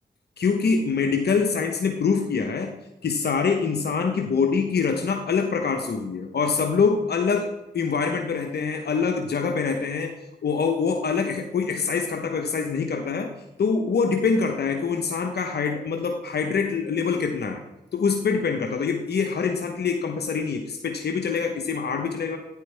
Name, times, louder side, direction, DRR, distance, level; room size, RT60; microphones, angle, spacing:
voice 1, 0.4-7.5 7.7-10.1 10.4-13.3 13.6-17.6 17.9-22.4, left 5 dB, 70° left, 4 dB, 1.0 m, -25 dB
9.7 x 8.1 x 3.4 m, 0.95 s
supercardioid pair, 40°, 18 cm